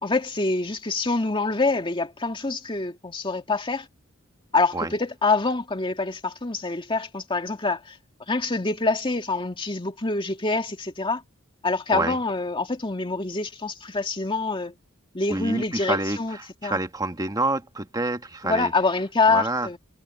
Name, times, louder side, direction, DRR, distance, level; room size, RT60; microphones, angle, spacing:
voice 1, 0.0-3.9 4.5-8.0 8.3-11.2 11.6-14.7 15.1-16.8 18.4-19.8, left 3 dB, 25° left, 2.1 m, -25 dB
voice 2, 15.3-18.7 19.3-19.7, right 2 dB, 20° right, 1.6 m, -28 dB
head